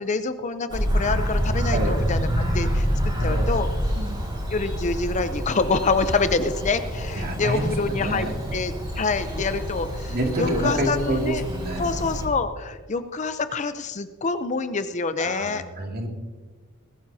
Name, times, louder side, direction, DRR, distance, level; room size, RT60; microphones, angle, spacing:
voice 1, 0.0-3.7 4.5-11.4 11.8-15.6, left 4 dB, 35° left, 11 dB, 0.6 m, -26 dB
Bird vocalization bird call bird song, 0.7-12.3, equal, 25° right, 4.7 m, -27 dB
voice 2, 2.6-3.5 3.9-4.2 7.2-8.5 10.1-11.9 15.2-16.1, right 1 dB, 50° right, 1 dB, 2.4 m, -28 dB
20.0 x 14.5 x 2.8 m, 1.4 s
head